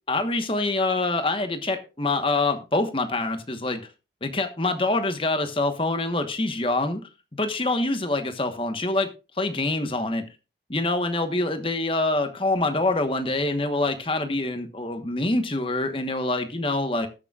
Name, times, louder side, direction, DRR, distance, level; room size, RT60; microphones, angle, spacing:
voice 1, 0.1-3.8 4.2-7.0 7.3-9.1 9.4-10.2 10.7-17.1, left 2 dB, 30° left, 7 dB, 1.2 m, -25 dB
19.5 x 6.8 x 2.4 m, 0.30 s
head